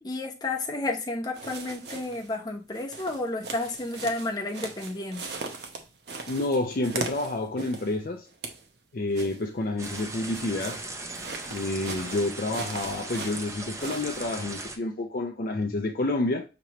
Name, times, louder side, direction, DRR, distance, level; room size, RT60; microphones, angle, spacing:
voice 1, 0.0-5.3, left 2 dB, 20° left, 0.9 m, -31 dB
sound 1, 1.3-2.3 2.7-7.9 8.3-8.7 9.1-14.2, right 3 dB, 65° right, 0.8 m, -39 dB
voice 2, 6.3-8.3 8.9-10.8 11.5-16.4, left 2 dB, 50° left, 0.5 m, -29 dB
sound 2, 9.8-14.8, right 2 dB, 15° right, 0.5 m, -38 dB
6.0 x 3.0 x 3.0 m
head